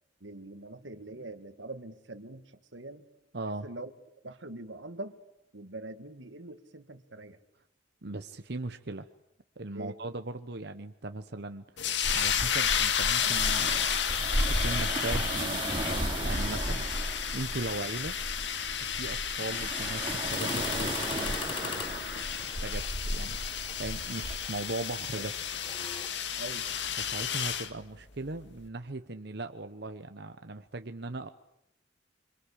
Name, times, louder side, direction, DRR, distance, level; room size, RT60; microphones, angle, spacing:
voice 1, 0.2-3.1 3.6-3.9 4.2-5.2 5.5-7.4 9.7-10.0 25.2-25.3 26.4-26.7, right 2 dB, 85° right, 9 dB, 2.0 m, -43 dB
voice 2, 3.3-3.7 8.0-9.1 9.6-11.6 12.1-14.2 14.4-15.6 15.9-17.1 17.3-18.1 18.8-21.9 22.4-25.5 27.0-31.3, right 2 dB, 60° right, 8 dB, 1.0 m, -39 dB
sound 1, 11.8-27.7, left 8 dB, 75° left, 2.1 m, -32 dB
sound 2, 12.0-24.4, right 1 dB, 25° right, 3.2 m, -34 dB
sound 3, 20.3-26.1, left 4 dB, 30° left, 2.1 m, -43 dB
26.5 x 26.0 x 8.5 m, 0.80 s
head